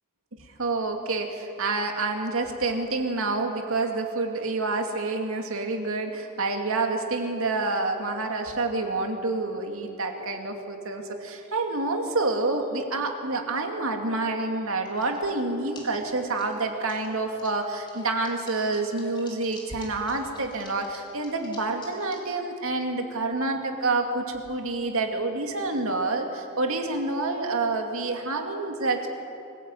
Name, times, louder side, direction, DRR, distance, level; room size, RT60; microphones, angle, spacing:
voice 1, 0.6-29.1, right 3 dB, 70° right, 4 dB, 2.5 m, -28 dB
sound 1, 14.7-15.4 15.6-17.1 17.4-22.3, left 2 dB, 20° left, 4.2 m, -49 dB
23.5 x 15.5 x 9.1 m, 2.7 s
head